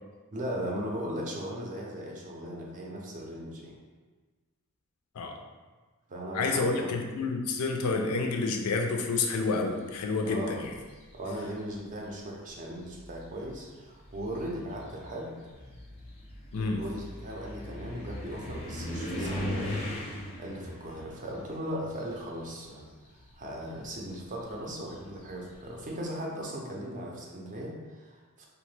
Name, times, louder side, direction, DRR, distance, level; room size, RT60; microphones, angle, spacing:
voice 1, 0.3-3.8 6.1-6.9 10.2-10.6 11.1-15.3 16.6-19.9 20.4-22.9 23.3-28.5, equal, 35° right, -1 dB, 0.5 m, -38 dB
voice 2, 6.3-10.7 16.5-16.8, left 3 dB, 80° left, 3 dB, 0.4 m, -29 dB
sound 1, 10.6-11.2 12.1-12.2 12.8-22.7 23.0-25.6, left 1 dB, 25° left, 0.5 m, -39 dB
2.8 x 2.1 x 3.1 m, 1.4 s
head